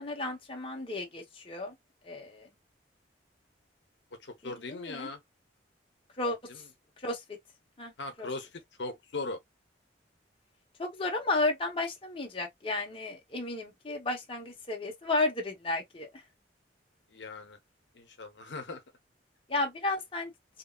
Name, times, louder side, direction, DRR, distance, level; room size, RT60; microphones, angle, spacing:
voice 1, 0.0-1.8 2.0-2.5 4.4-5.1 6.2-6.6 7.0-7.4 7.8-7.9 8.2-8.3 10.8-16.2 19.5-20.3, left 2 dB, 30° left, 0.8 m, -33 dB
voice 2, 4.2-5.2 6.5-6.6 8.0-9.4 17.1-17.6 17.9-18.8, left 3 dB, 70° left, 0.8 m, -39 dB
2.9 x 2.7 x 2.3 m
head